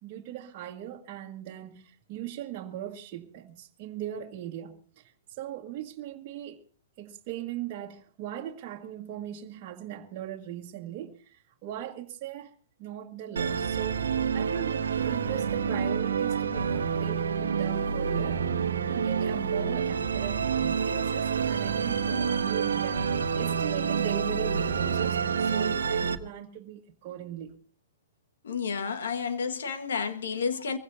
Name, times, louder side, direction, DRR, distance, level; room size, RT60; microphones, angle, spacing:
voice 1, 0.0-6.6 7.0-12.5 12.8-14.1 14.3-18.4 18.9-27.6, right 11 dB, 40° right, 1.9 m, -39 dB
Musical instrument, 13.4-26.2, right 6 dB, 85° right, 1.2 m, -28 dB
voice 2, 28.4-30.8, left 6 dB, 75° left, 1.8 m, -31 dB
24.5 x 16.0 x 2.8 m
hypercardioid pair, 125°, 0 cm